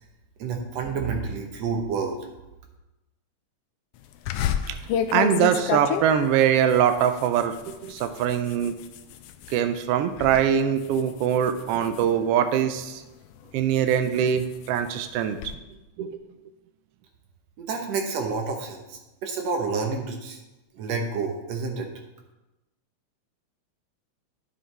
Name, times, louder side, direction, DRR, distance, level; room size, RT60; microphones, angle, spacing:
voice 1, 0.4-2.3 17.6-20.4 20.7-21.9, right 4 dB, 65° right, 3 dB, 2.1 m, -29 dB
sound 1, 4.3-9.6 10.0-10.4 10.8-12.8 13.4-15.5, left 9 dB, 85° left, 1.4 m, -31 dB
voice 2, 5.1-8.7 9.5-13.0 13.5-15.4 16.0-16.2, right 9 dB, 90° right, 8 dB, 1.3 m, -23 dB
9.8 x 7.7 x 3.3 m, 1.0 s
omnidirectional pair, 3.3 m